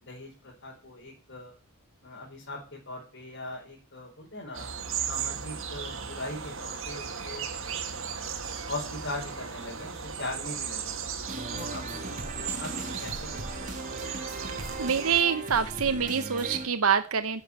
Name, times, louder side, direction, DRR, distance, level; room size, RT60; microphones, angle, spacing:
voice 1, 0.0-1.5 2.0-4.7 5.1-7.8 8.6-11.0 11.5-13.7, left 2 dB, 60° left, -4 dB, 4.7 m, -40 dB
sound 1, 4.5-15.2, right 6 dB, 65° right, 2.0 m, -36 dB
sound 2, 11.3-16.7, right 2 dB, 35° right, 2.6 m, -38 dB
voice 2, 14.8-17.4, right 7 dB, 85° right, 10 dB, 0.9 m, -26 dB
11.0 x 7.9 x 8.7 m, 0.36 s
head